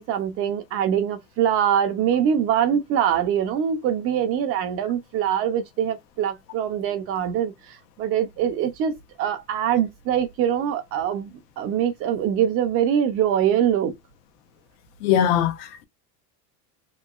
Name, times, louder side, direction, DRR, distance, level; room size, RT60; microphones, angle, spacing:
voice 1, 0.0-13.9, right 9 dB, 30° right, 0.4 m, -23 dB
voice 2, 15.0-15.8, left 10 dB, 80° left, 0.9 m, -21 dB
2.9 x 2.8 x 2.3 m
supercardioid pair, 145°, 48 cm